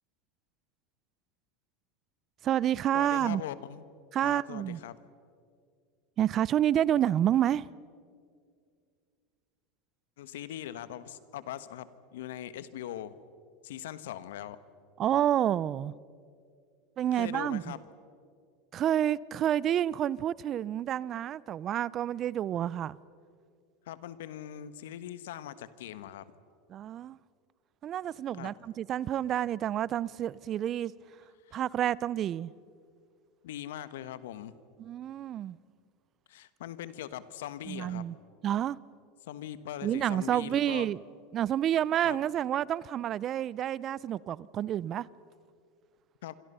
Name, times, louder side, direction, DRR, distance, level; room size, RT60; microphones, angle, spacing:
voice 1, 2.4-3.4 4.1-4.8 6.2-7.7 15.0-15.9 17.0-17.7 18.7-23.0 26.7-27.2 27.8-30.9 31.5-32.5 34.8-35.6 37.7-38.2 38.4-38.8 39.8-41.0 41.3-45.1, right 11 dB, 40° right, 0.6 m, -29 dB
voice 2, 2.9-3.9 4.2-5.0 10.2-13.2 13.6-14.6 17.1-17.8 23.9-26.2 28.4-28.5 31.5-31.6 33.4-34.6 36.3-38.0 39.3-40.9 42.0-42.2 46.2-46.3, left 11 dB, 80° left, 1.2 m, -41 dB
27.0 x 26.0 x 5.6 m
hypercardioid pair, 100°, 0 cm